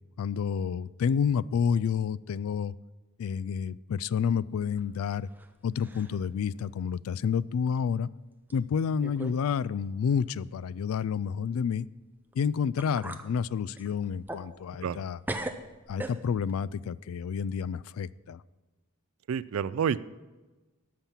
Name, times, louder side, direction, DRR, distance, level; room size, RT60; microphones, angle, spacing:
voice 1, 0.2-2.7 3.2-5.3 5.6-8.1 8.5-11.9 12.4-15.2 15.9-18.4, left 7 dB, 80° left, 21 dB, 0.3 m, -29 dB
sound 1, 4.6-5.5 5.8-6.3 6.7-6.8 7.7-7.8 8.5-8.6 9.0-9.4 9.7-9.8 12.3-12.4 12.8-13.3 13.7-15.0 15.3-16.6, right 1 dB, 10° right, 0.5 m, -39 dB
voice 2, 19.3-20.0, right 7 dB, 75° right, 18 dB, 0.3 m, -28 dB
12.5 x 5.9 x 7.3 m, 1.2 s
head